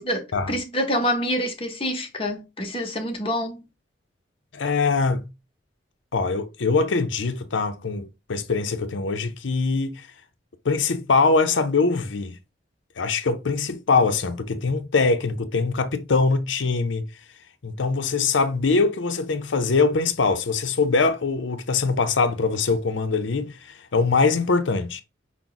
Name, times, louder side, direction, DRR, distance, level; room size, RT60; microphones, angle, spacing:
voice 1, 0.5-3.6, equal, 30° left, 0.9 m, -26 dB
voice 2, 4.5-5.3 6.1-10.1 10.6-12.4 13.0-17.1 17.6-25.0, left 4 dB, 80° left, 0.6 m, -23 dB
5.8 x 2.1 x 3.9 m
head